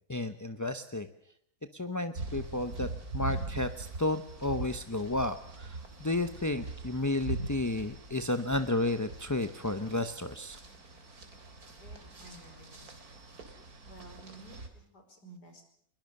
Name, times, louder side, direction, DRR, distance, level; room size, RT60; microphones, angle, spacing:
voice 1, 0.1-1.1 1.7-2.9 3.1-10.6, left 2 dB, 15° left, 9 dB, 0.6 m, -32 dB
ER walkingout, 2.1-14.7, right 3 dB, 55° right, 3.4 m, -42 dB
voice 2, 11.8-13.0 13.8-15.6, right 2 dB, 65° left, 5 dB, 5.8 m, -53 dB
22.5 x 21.5 x 6.6 m, 0.69 s
omnidirectional pair, 1.9 m